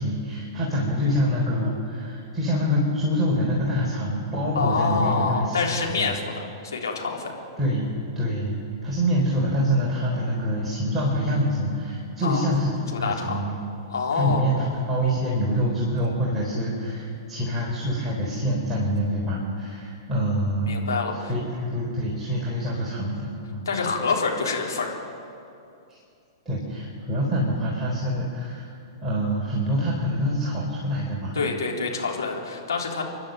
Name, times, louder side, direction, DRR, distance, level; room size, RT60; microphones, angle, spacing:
voice 1, 0.0-6.2 7.6-13.6 14.2-20.7 21.3-23.7 25.9-26.0 26.5-28.7 29.0-31.4, equal, 10° right, -6 dB, 4.3 m, -26 dB
voice 2, 4.6-7.3 12.2-12.5 13.0-13.4 13.9-14.4 20.6-21.3 23.7-24.9 31.3-33.0, left 4 dB, 70° left, -1 dB, 3.7 m, -26 dB
29.5 x 11.5 x 7.6 m, 2.5 s
figure-of-eight pair, 105°, 2 cm